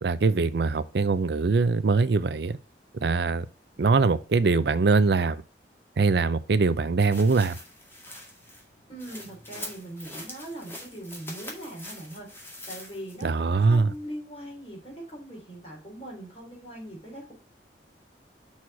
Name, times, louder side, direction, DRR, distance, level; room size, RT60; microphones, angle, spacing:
voice 1, 0.0-2.6 3.0-3.5 3.8-5.4 6.0-7.6 13.2-13.9, right 4 dB, 65° right, 0.5 m, -22 dB
sound 1, 7.0-13.3 13.7-13.8, left 1 dB, 15° left, 1.9 m, -43 dB
voice 2, 8.9-17.3, right 1 dB, 35° left, 3.4 m, -41 dB
6.3 x 4.3 x 5.9 m
head